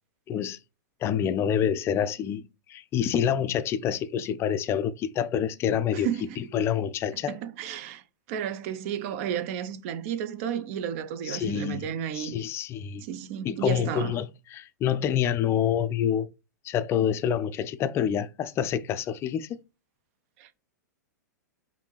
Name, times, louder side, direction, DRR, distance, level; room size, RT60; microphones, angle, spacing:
voice 1, 0.3-0.6 1.0-2.4 2.7-6.1 6.4-7.4 11.2-11.9 12.1-13.0 13.4-16.3 16.6-19.5, left 9 dB, 25° left, 0.4 m, -27 dB
voice 2, 5.9-6.4 7.3-8.0 8.3-12.4 13.0-14.1 20.4-20.6, right 9 dB, 45° right, 0.6 m, -32 dB
5.0 x 2.7 x 3.2 m
figure-of-eight pair, 100°, 10 cm